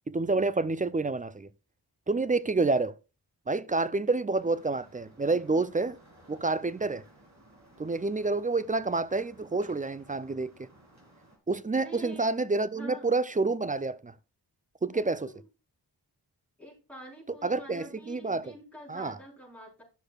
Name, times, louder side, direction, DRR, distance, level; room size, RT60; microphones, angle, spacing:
voice 1, 0.1-1.5 2.1-2.9 3.5-6.0 6.3-7.0 7.8-10.7 11.5-14.1 14.8-15.3 17.4-18.4 18.9-19.2, right 3 dB, 20° right, 0.4 m, -28 dB
sound 1, 4.3-11.4, right 1 dB, 40° right, 2.7 m, -58 dB
voice 2, 11.8-12.2 12.6-13.2 14.9-15.4 16.6-19.8, right 1 dB, 5° left, 4.0 m, -47 dB
11.5 x 6.6 x 2.3 m
cardioid pair, 55°, 44 cm